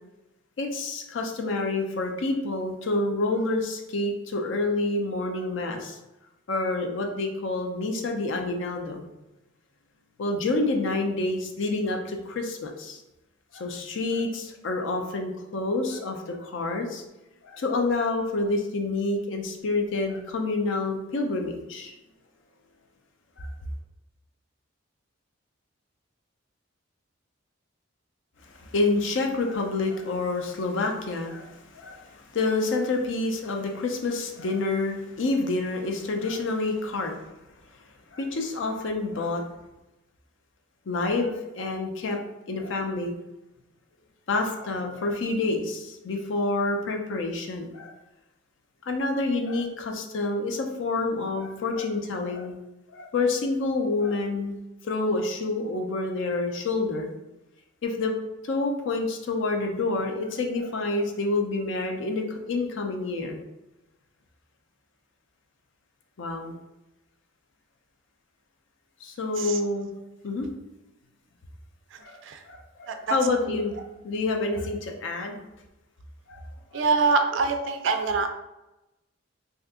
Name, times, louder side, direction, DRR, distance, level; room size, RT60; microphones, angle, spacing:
voice 1, 0.6-6.0 6.5-9.0 10.2-13.0 13.5-17.0 17.4-21.9 23.4-23.5 28.6-37.1 38.1-39.4 40.9-42.2 42.5-43.1 44.3-47.9 48.9-52.5 52.9-54.5 54.8-57.1 57.8-58.1 58.4-63.4 66.2-66.6 69.0-69.9 70.2-70.5 72.0-75.4 76.3-76.4 76.7-76.8, left 3 dB, 65° left, 3 dB, 0.5 m, -28 dB
voice 2, 76.7-78.4, right 4 dB, 65° right, 6 dB, 0.3 m, -24 dB
2.7 x 2.4 x 3.5 m, 0.96 s
head